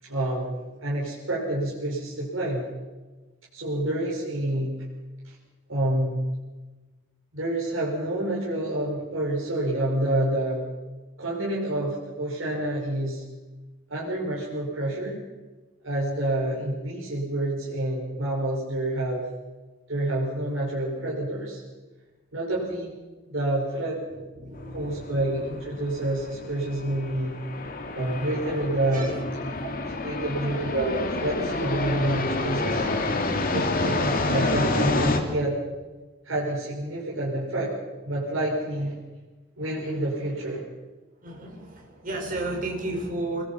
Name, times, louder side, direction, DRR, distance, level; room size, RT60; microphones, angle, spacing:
voice 1, 0.0-2.7 3.5-4.9 5.2-5.3 5.7-6.3 7.3-10.7 11.2-13.2 13.9-15.2 15.8-19.3 19.9-21.6 22.3-22.9 23.3-24.0 24.7-27.4 27.9-29.1 29.6-29.7 30.0-32.9 33.5-35.6 36.2-37.7 38.0-39.0 39.6-40.6, right 1 dB, 75° right, -5 dB, 5.5 m, -28 dB
voice 2, 24.1-25.2 27.9-28.4 28.8-30.3 41.2-43.4, right 2 dB, 45° right, 0 dB, 5.6 m, -34 dB
sound 1, 24.6-35.2, left 2 dB, 45° left, 2.5 m, -28 dB
25.0 x 20.5 x 5.7 m, 1.2 s
head